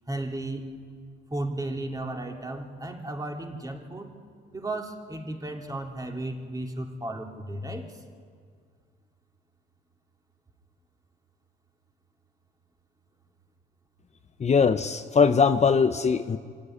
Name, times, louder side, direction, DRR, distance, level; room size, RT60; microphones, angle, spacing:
voice 1, 0.1-0.7 1.3-4.1 4.5-8.0, right 1 dB, 20° right, 2 dB, 2.6 m, -34 dB
voice 2, 14.4-16.4, left 5 dB, 35° left, 9 dB, 0.7 m, -21 dB
24.5 x 13.0 x 9.8 m, 2.1 s
cardioid pair, 90°, 20 cm